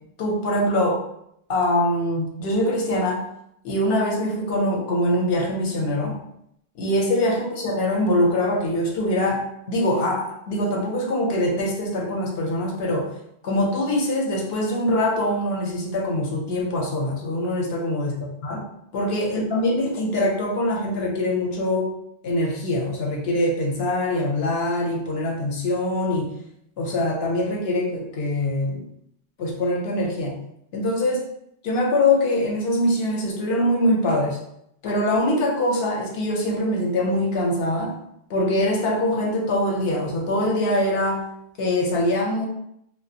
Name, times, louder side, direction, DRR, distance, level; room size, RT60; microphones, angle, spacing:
voice 1, 0.2-1.0 1.5-3.2 3.6-6.2 6.8-13.1 13.4-18.2 18.4-18.6 18.9-21.9 22.2-26.3 26.8-28.9 29.4-30.4 30.7-31.2 31.6-34.4 34.8-38.0 38.3-41.2 41.6-42.5, left 1 dB, 70° left, 0 dB, 0.8 m, -23 dB
2.4 x 2.1 x 2.7 m, 0.75 s
omnidirectional pair, 1.1 m